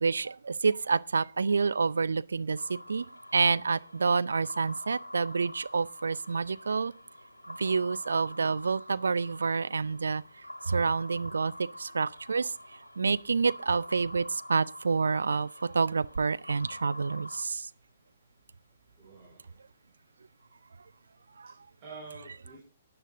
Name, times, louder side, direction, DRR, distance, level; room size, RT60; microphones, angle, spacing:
voice 1, 0.0-3.0 3.3-6.9 7.6-10.2 10.7-11.5 11.8-12.5 13.0-14.2 14.5-15.5 15.7-17.6, right 4 dB, 70° right, 0.5 m, -28 dB
sound 1, 2.6-17.4, left 1 dB, 90° left, 1.3 m, -46 dB
voice 2, 19.0-19.5 21.5-22.6, right 4 dB, 35° right, 5.9 m, -48 dB
15.5 x 10.0 x 3.7 m
figure-of-eight pair, 125°, 0 cm